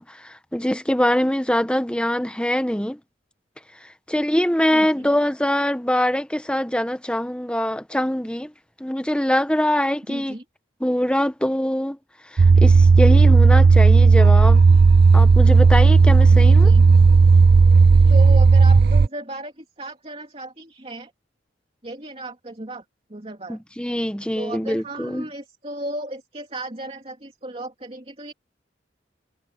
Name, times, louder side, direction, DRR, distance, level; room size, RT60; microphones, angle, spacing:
voice 1, 0.0-3.0 4.1-8.5 8.8-10.4 10.8-12.0 12.3-14.6 15.1-16.7 23.5-25.3, equal, 5° left, 1.3 m, -23 dB
voice 2, 4.7-5.1 10.1-10.4 16.3-17.1 18.1-21.1 21.8-22.8 23.1-23.6 24.3-28.3, right 1 dB, 35° right, 3.1 m, -35 dB
sound 1, 12.4-19.1, right 4 dB, 60° right, 0.5 m, -12 dB
head